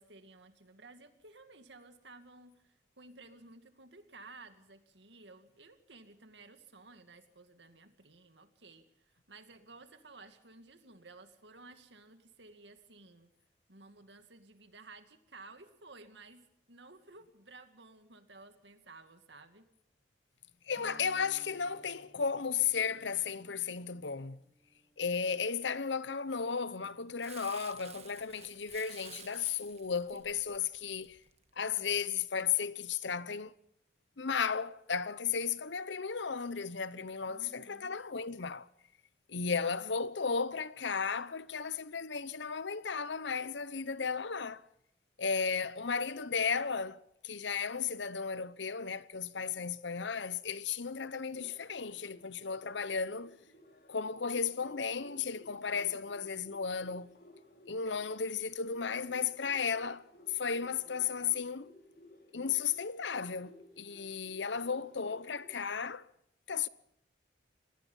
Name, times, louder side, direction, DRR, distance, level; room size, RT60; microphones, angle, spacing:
voice 1, 0.0-13.3 13.7-19.7 37.3-38.0, right 3 dB, 75° right, 2.3 m, -55 dB
voice 2, 20.7-24.4 25.0-31.2 31.6-33.5 34.2-38.7 39.3-44.6 45.2-53.4 53.9-57.1 57.7-61.7 62.3-66.1 66.5-66.7, left 6 dB, 80° left, 0.9 m, -34 dB
sound 1, 20.7-25.6, right 1 dB, 15° right, 3.7 m, -61 dB
Crumpling crinkling, 27.2-31.7 32.2-32.3, right 9 dB, 35° right, 1.4 m, -53 dB
sound 2, 51.3-65.5, left 1 dB, 55° left, 3.8 m, -58 dB
26.0 x 18.5 x 5.5 m
head